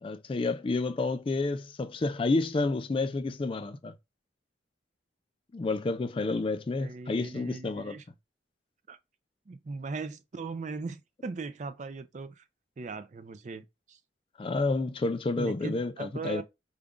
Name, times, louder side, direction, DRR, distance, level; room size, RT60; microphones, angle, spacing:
voice 1, 0.0-3.9 5.5-8.0 14.4-16.4, left 3 dB, 30° left, 0.3 m, -30 dB
voice 2, 6.8-8.0 8.9-9.0 9.5-12.4 12.8-14.0 15.4-16.4, right 4 dB, 40° right, 0.4 m, -39 dB
5.0 x 2.3 x 3.5 m
head